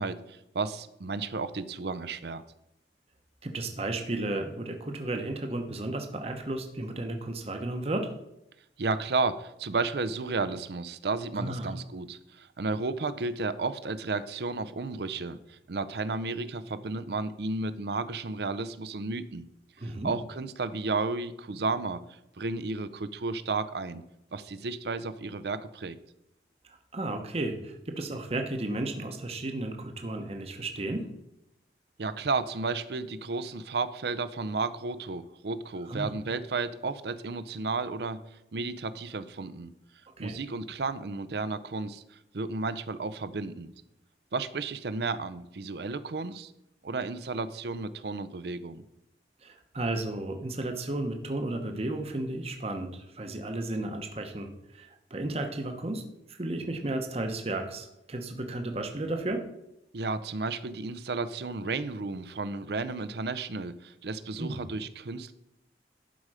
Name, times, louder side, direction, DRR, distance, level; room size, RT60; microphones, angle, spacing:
voice 1, 0.0-2.4 8.8-19.5 19.8-22.0 22.4-24.0 24.3-26.0 32.0-38.2 38.5-39.7 40.2-43.7 44.3-46.5 46.8-48.8 59.9-65.3, right 3 dB, 65° right, 13 dB, 0.6 m, -33 dB
voice 2, 3.4-8.1 11.4-11.7 19.8-20.1 26.6-31.1 35.9-36.1 40.2-40.4 49.4-56.0 56.3-59.5 64.4-64.6, right 2 dB, 35° right, 5 dB, 0.9 m, -33 dB
11.5 x 5.0 x 4.9 m, 0.84 s
head